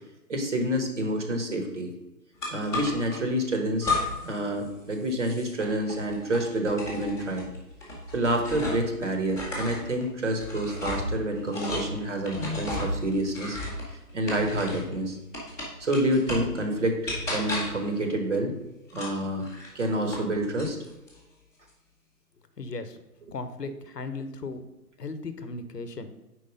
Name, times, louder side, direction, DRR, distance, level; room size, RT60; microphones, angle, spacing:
voice 1, 0.3-1.9 2.5-3.9 4.2-7.5 8.1-13.6 14.1-15.2 15.8-18.5 18.9-19.4 19.7-20.8, right 1 dB, 50° right, 4 dB, 1.1 m, -28 dB
sound 1, 2.4-3.2 3.8-4.4 4.7-8.9 9.3-14.9 15.3-16.6 17.0-17.9 18.9-20.3 20.6-21.2, left 2 dB, 5° left, 0.7 m, -34 dB
voice 2, 22.6-23.0 23.3-24.6 25.0-26.1, left 3 dB, 80° left, 10 dB, 0.8 m, -36 dB
4.8 x 4.2 x 5.1 m, 1.0 s
figure-of-eight pair, 140°, 48 cm